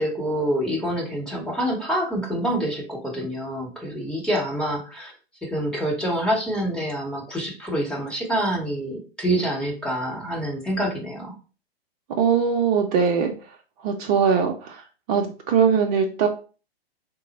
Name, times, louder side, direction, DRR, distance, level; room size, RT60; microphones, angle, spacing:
voice 1, 0.0-5.1 5.4-11.3, equal, 5° left, -2 dB, 0.9 m, -26 dB
voice 2, 12.2-13.3 13.8-16.3, right 6 dB, 40° right, 2 dB, 0.6 m, -21 dB
3.7 x 2.0 x 3.9 m, 0.36 s
hypercardioid pair, 120°, 31 cm